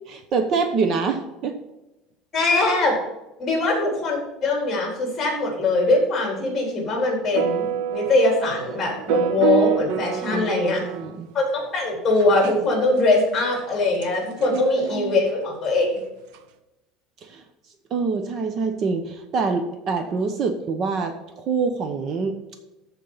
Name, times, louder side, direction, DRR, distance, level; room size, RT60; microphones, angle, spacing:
voice 1, 0.1-1.6 10.3-11.3 14.5-15.2 17.2-17.4 17.9-22.4, right 4 dB, 40° right, 6 dB, 0.9 m, -26 dB
voice 2, 2.3-3.0 3.4-10.8 11.3-16.0, left 2 dB, 20° left, -1 dB, 3.9 m, -22 dB
sound 1, 7.3-11.2 12.2-12.5 13.2-13.3 13.6-13.7 14.0-14.1 14.4-14.6 16.3-16.4, right 8 dB, 70° right, 0.8 m, -26 dB
13.5 x 4.6 x 5.6 m, 0.97 s
cardioid pair, 155°, 0 cm